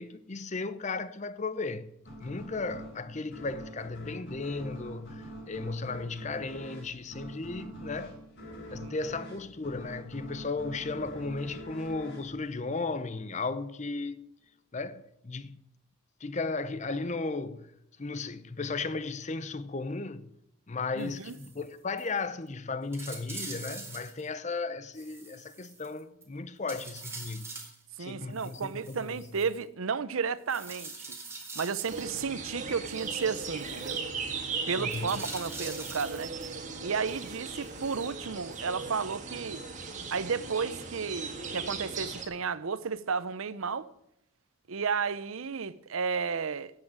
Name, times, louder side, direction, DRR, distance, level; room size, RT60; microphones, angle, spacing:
voice 1, 0.0-1.9 2.2-8.2 8.7-14.2 14.7-15.6 16.2-17.7 18.0-20.3 20.7-27.5 28.0-29.2 34.8-35.2, left 3 dB, 35° left, 0.7 m, -35 dB
sound 1, 2.0-13.3, equal, 55° left, 4.6 m, -45 dB
sound 2, 21.0-21.7 22.0-22.1 22.5-22.6 22.9-24.3 24.9-26.2 26.7-27.8 28.3-29.6 30.5-32.2 32.9-34.0 34.9-36.5 37.1-38.0 38.5-38.6, right 3 dB, 10° right, 2.2 m, -44 dB
voice 2, 21.0-21.3 28.0-31.1 31.6-34.0 34.7-36.3 36.8-39.6 40.1-43.9 44.7-46.7, right 5 dB, 75° right, 0.7 m, -33 dB
sound 3, 31.9-42.3, right 4 dB, 35° right, 1.6 m, -38 dB
10.5 x 7.8 x 8.9 m
head